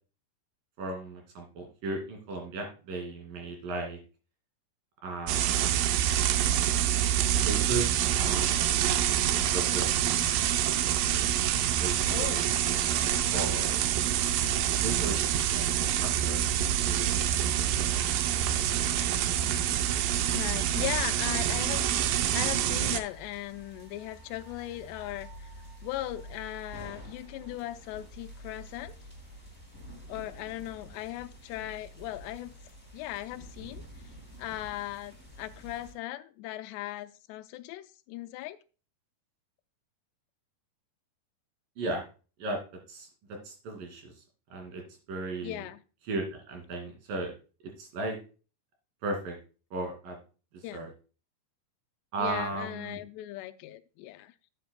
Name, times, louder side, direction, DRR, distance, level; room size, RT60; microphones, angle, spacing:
voice 1, 0.8-4.0 5.0-6.0 7.3-7.9 8.1-8.7 9.5-9.9 10.2-10.4 11.1-11.4 11.8-12.8 13.3-13.9 14.8-15.6 16.0-16.5 16.8-17.1 41.8-42.0 42.4-42.6 42.9-44.1 44.5-44.8 45.1-45.6 46.1-47.3 47.8-48.2 49.0-49.4 49.7-50.2 50.7-50.9 52.1-53.0, right 2 dB, 60° right, 2 dB, 4.0 m, -36 dB
sound 1, 5.3-23.0, right 11 dB, 80° right, 2.0 m, -26 dB
voice 2, 12.1-12.5 13.0-13.4 20.3-25.5 25.8-28.9 30.1-32.5 32.9-33.8 34.4-38.6 45.4-45.8 50.6-50.9 52.2-54.3, left 15 dB, 90° left, 9 dB, 2.8 m, -38 dB
sound 2, 16.7-35.9, equal, 5° right, 4.5 m, -48 dB
11.5 x 9.3 x 2.2 m, 0.34 s
omnidirectional pair, 4.8 m